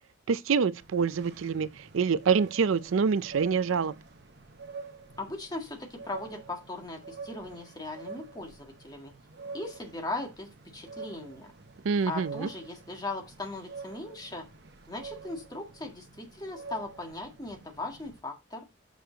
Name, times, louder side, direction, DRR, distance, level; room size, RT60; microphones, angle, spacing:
voice 1, 0.3-3.9 11.8-12.5, right 6 dB, 90° right, 0.5 m, -26 dB
sound 1, 0.8-18.2, right 4 dB, 55° right, 0.9 m, -47 dB
voice 2, 5.2-9.1 9.5-11.5 12.1-14.5 14.9-18.7, left 2 dB, 20° left, 1.8 m, -38 dB
6.6 x 6.4 x 3.9 m
head